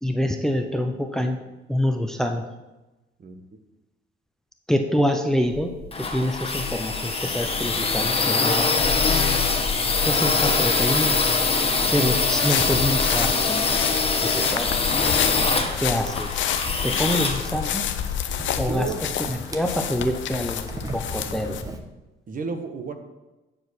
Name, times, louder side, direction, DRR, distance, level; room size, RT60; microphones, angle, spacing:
voice 1, 0.0-1.4 1.7-2.4 4.7-8.7 10.1-11.1 11.9-13.8 14.2-14.7 15.8-16.5 16.8-17.9 18.6-18.9 19.2-21.6, equal, ahead, 5 dB, 0.8 m, -26 dB
sound 1, 5.5-18.3, left 4 dB, 30° left, 1.5 m, -23 dB
sound 2, 11.1-21.8, right 2 dB, 15° right, 1.1 m, -40 dB
sound 3, 12.2-21.6, left 9 dB, 75° left, 0.7 m, -29 dB
voice 2, 18.3-19.0 22.3-22.9, right 4 dB, 45° right, 6 dB, 1.3 m, -32 dB
9.2 x 4.9 x 6.2 m, 1.0 s
cardioid pair, 90°, 20 cm